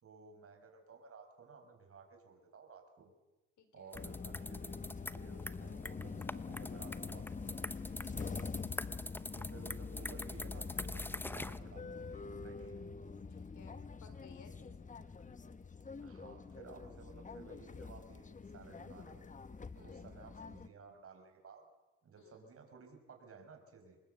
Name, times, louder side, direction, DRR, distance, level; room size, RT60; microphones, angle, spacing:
voice 1, 0.0-3.1 3.7-4.8 5.1-7.6 8.0-8.4 9.3-12.9 15.0-15.1 16.0-19.2 19.7-21.6 22.0-24.0, right 4 dB, 50° right, 4 dB, 5.5 m, -56 dB
voice 2, 3.6-4.0 8.0-8.9 13.3-14.9 15.2-15.4 19.8-20.1 22.2-22.5, left 5 dB, 70° left, 9 dB, 4.1 m, -62 dB
sound 1, 3.9-20.7, left 4 dB, 25° left, 1.1 m, -45 dB
sound 2, 3.9-11.6, left 1 dB, 5° left, 0.8 m, -44 dB
25.5 x 20.5 x 8.0 m, 1.1 s
cardioid pair, 90°, 30 cm